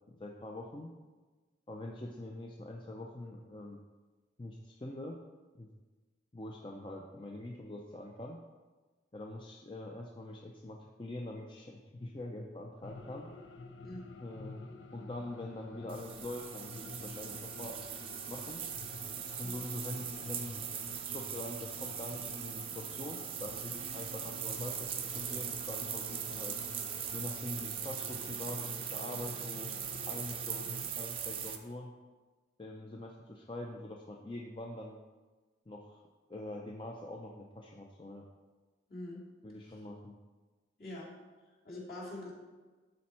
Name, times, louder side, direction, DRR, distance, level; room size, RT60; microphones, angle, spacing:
voice 1, 0.1-0.9 1.7-3.8 4.4-5.2 5.6-5.7 6.3-8.4 9.1-13.3 14.2-14.6 14.9-17.8 18.3-18.7 19.4-20.6 21.0-26.6 27.1-29.7 30.1-31.9 32.6-35.0 35.7-36.0 36.3-38.3 39.4-40.2, left 1 dB, 25° left, 0 dB, 0.5 m, -44 dB
sound 1, 12.8-30.9, left 2 dB, 90° left, 0.7 m, -49 dB
sound 2, 15.9-31.6, right 8 dB, 30° right, 0.5 m, -40 dB
voice 2, 38.9-39.3 39.6-39.8 40.8-41.2 41.6-42.3, left 1 dB, 55° left, -5 dB, 2.4 m, -44 dB
12.0 x 4.2 x 4.3 m, 1.3 s
head